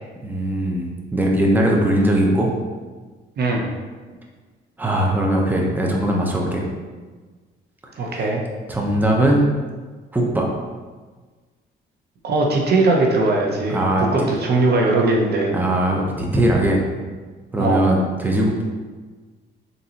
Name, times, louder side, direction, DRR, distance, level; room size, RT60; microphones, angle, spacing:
voice 1, 0.2-2.5 4.8-6.6 8.7-9.4 10.1-10.5 13.7-14.3 15.5-16.8 17.5-18.6, right 1 dB, 10° right, -1 dB, 0.7 m, -20 dB
voice 2, 3.4-3.7 8.0-8.4 12.2-15.5 17.6-17.9, right 2 dB, 55° right, 0 dB, 0.8 m, -19 dB
3.9 x 3.9 x 2.9 m, 1.4 s
cardioid pair, 90°, 20 cm